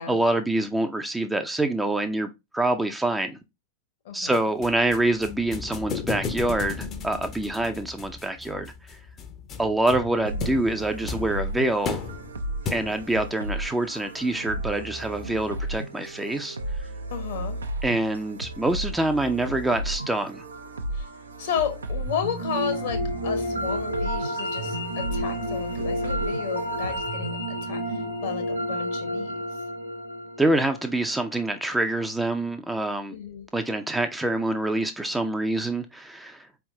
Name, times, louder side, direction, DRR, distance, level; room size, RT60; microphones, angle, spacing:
voice 1, 0.1-3.4 4.1-9.0 9.6-12.0 12.7-16.6 17.8-20.4 30.4-33.2 33.5-36.5, right 2 dB, 5° right, 0.5 m, -26 dB
sound 1, 4.3-13.2, left 5 dB, 30° left, 0.7 m, -35 dB
sound 2, 10.2-27.1, right 1 dB, 75° right, 0.6 m, -34 dB
voice 2, 17.1-17.6 20.9-21.1 21.4-27.8 28.2-29.4 33.1-33.5, left 7 dB, 55° left, 1.1 m, -33 dB
sound 3, 22.0-31.2, equal, 90° left, 1.3 m, -30 dB
4.5 x 3.5 x 2.7 m
figure-of-eight pair, 90°, 0 cm